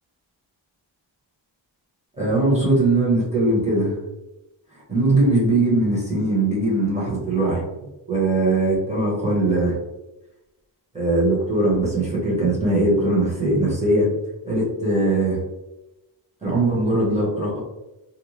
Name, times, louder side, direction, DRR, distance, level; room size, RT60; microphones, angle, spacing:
voice 1, 2.2-3.9 4.9-7.6 8.1-9.8 10.9-14.1 14.4-15.4 16.4-17.6, right 2 dB, 15° right, -5 dB, 0.9 m, -20 dB
2.6 x 2.1 x 3.0 m, 0.98 s
wide cardioid pair, 165°, 47 cm